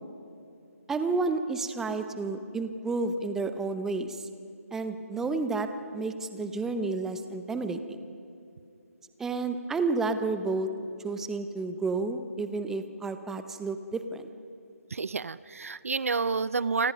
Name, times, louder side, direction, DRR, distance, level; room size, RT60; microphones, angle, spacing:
voice 1, 0.9-4.3 4.7-5.7 5.9-8.0 9.2-10.7 11.0-14.3, right 3 dB, 5° right, 9 dB, 0.8 m, -31 dB
voice 2, 14.9-16.9, right 4 dB, 60° right, 18 dB, 0.6 m, -29 dB
29.0 x 25.0 x 5.3 m, 2.7 s
figure-of-eight pair, 145°, 8 cm